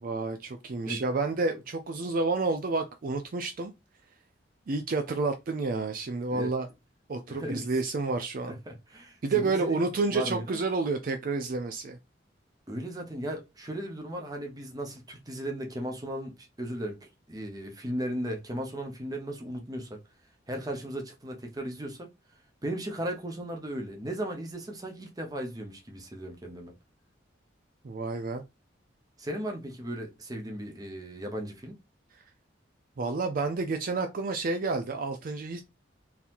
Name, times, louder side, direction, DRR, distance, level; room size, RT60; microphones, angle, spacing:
voice 1, 0.0-3.7 4.7-6.7 7.1-8.5 9.2-12.0 27.8-28.4 33.0-35.6, right 3 dB, 45° right, 0.4 m, -30 dB
voice 2, 7.3-7.7 8.5-9.8 10.1-10.6 12.7-17.0 17.3-20.0 20.5-22.1 22.6-26.7 29.2-31.7, right 1 dB, 20° right, 0.8 m, -36 dB
3.9 x 2.9 x 2.5 m
head